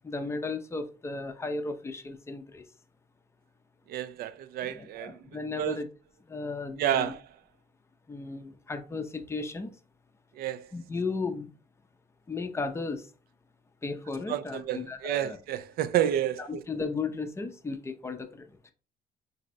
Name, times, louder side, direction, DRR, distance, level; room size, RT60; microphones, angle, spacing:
voice 1, 0.0-2.6 4.6-5.9 6.3-7.1 8.1-9.7 10.7-11.5 12.3-13.1 13.8-15.4 16.4-18.5, left 3 dB, 15° left, 0.5 m, -35 dB
voice 2, 3.9-5.2 5.6-5.8 6.8-7.2 10.4-10.7 14.3-16.6, right 11 dB, 65° right, 0.4 m, -30 dB
3.8 x 2.6 x 3.1 m
cardioid pair, 110°, 17 cm